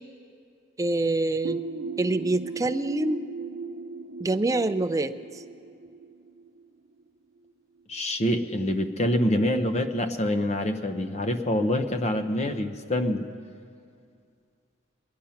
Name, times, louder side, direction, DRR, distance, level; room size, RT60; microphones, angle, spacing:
voice 1, 0.8-1.6 2.0-3.3 4.2-5.1, right 2 dB, 15° right, 9 dB, 0.4 m, -25 dB
sound 1, 1.4-7.0, right 4 dB, 80° right, 0.6 m, -37 dB
voice 2, 7.9-13.3, left 1 dB, 35° left, 8 dB, 0.8 m, -26 dB
22.0 x 10.5 x 5.7 m, 2.3 s
head